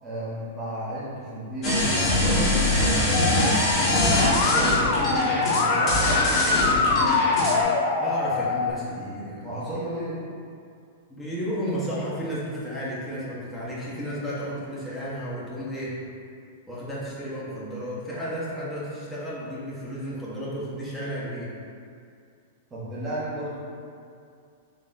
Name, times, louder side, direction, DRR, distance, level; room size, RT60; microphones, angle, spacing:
voice 1, 0.0-7.0 9.4-10.2 22.7-23.6, right 1 dB, 20° right, -10 dB, 1.2 m, -33 dB
sound 1, 1.6-7.6, left 1 dB, 30° left, 1.4 m, -23 dB
Musical instrument, 3.1-8.7, left 4 dB, 55° left, 0.4 m, -24 dB
voice 2, 8.0-9.5 11.1-15.9 16.7-21.5, equal, 5° left, -10 dB, 1.1 m, -32 dB
4.0 x 3.4 x 2.6 m, 2.3 s
hypercardioid pair, 105°, 0 cm